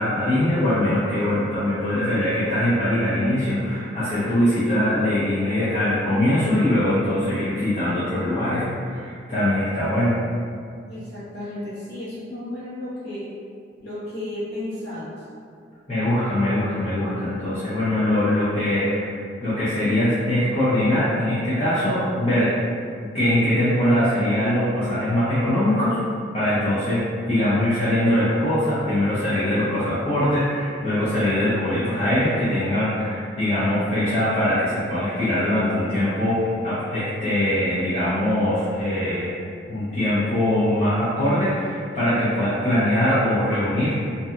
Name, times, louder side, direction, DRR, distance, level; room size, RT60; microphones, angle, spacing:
voice 1, 0.0-10.2 15.9-19.2 19.4-22.5 23.1-26.0 26.3-39.3 39.7-44.0, left 1 dB, 30° left, -13 dB, 0.6 m, -22 dB
voice 2, 10.9-13.2 13.8-15.1, left 1 dB, 55° left, -10 dB, 0.9 m, -33 dB
2.7 x 2.2 x 2.4 m, 2.2 s
head